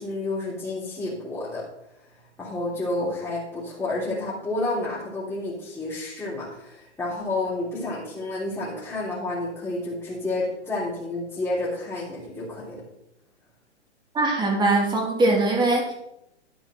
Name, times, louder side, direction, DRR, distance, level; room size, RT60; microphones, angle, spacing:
voice 1, 0.0-1.6 2.4-12.8, left 2 dB, 5° left, -9 dB, 3.4 m, -30 dB
voice 2, 14.1-15.9, right 2 dB, 15° right, 0 dB, 3.0 m, -21 dB
11.5 x 6.4 x 6.5 m, 0.82 s
hypercardioid pair, 130°, 35 cm